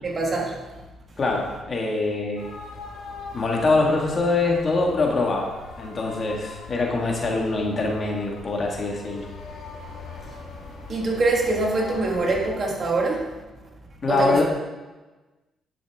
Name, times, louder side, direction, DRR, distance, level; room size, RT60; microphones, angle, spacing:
voice 1, 0.0-0.6 10.9-13.3 14.1-14.4, right 3 dB, 40° right, -1 dB, 2.0 m, -24 dB
voice 2, 1.2-2.5 3.3-5.5 5.8-9.2 14.0-14.4, left 3 dB, 40° left, 1 dB, 1.6 m, -24 dB
sound 1, 2.4-12.5, left 3 dB, 90° left, 2.6 m, -40 dB
10.5 x 6.2 x 3.6 m, 1.2 s
cardioid pair, 90°, 0 cm